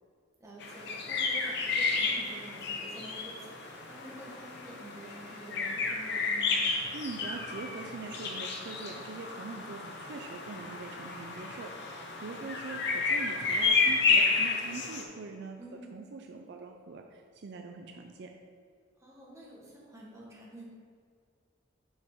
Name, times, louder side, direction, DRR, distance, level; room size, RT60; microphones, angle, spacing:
voice 1, 0.4-6.6 15.6-15.9 19.0-20.7, right 1 dB, 15° right, -4 dB, 1.3 m, -48 dB
sound 1, 0.6-15.0, left 4 dB, 60° left, 0.8 m, -31 dB
voice 2, 6.9-15.6 15.9-18.3, right 3 dB, 60° right, 3 dB, 0.4 m, -43 dB
6.0 x 5.5 x 3.6 m, 2.1 s
head